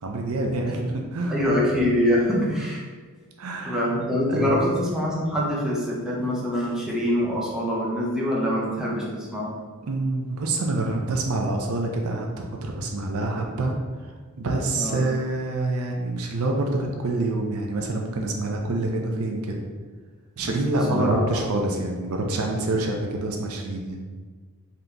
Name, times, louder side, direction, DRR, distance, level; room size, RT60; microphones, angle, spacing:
voice 1, 0.0-1.5 3.4-3.8 4.3-4.6 9.8-13.8 14.0-19.6 20.4-24.0, right 2 dB, 70° right, 1 dB, 0.5 m, -27 dB
voice 2, 1.3-2.8 3.6-9.5 14.8-15.0 20.4-20.5 20.9-21.4, equal, 5° right, -6 dB, 0.7 m, -24 dB
3.8 x 2.8 x 3.4 m, 1.5 s
head